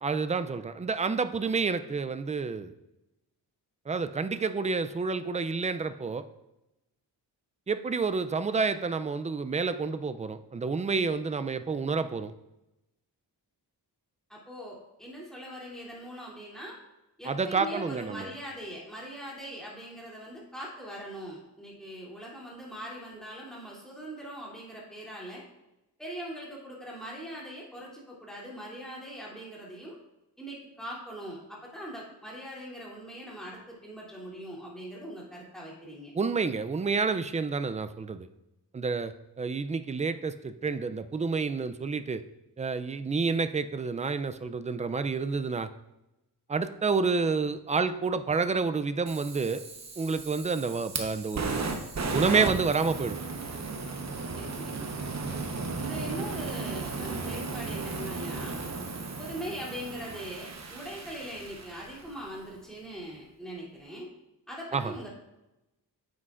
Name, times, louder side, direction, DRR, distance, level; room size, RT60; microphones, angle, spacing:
voice 1, 0.0-2.7 3.9-6.3 7.7-12.3 17.2-18.3 36.1-38.3 38.7-42.2 42.6-45.7 46.5-49.6 50.0-53.2 64.7-64.9, right 4 dB, 20° right, 11 dB, 0.3 m, -29 dB
voice 2, 14.3-16.8 17.2-25.4 26.0-30.0 30.4-36.1 54.3-54.9 55.8-58.6 59.2-64.1 64.5-65.1, equal, ahead, -5 dB, 2.7 m, -41 dB
Fire, 49.1-62.2, right 3 dB, 40° right, 1.0 m, -35 dB
9.8 x 7.3 x 2.4 m, 0.94 s
wide cardioid pair, 115°, 41 cm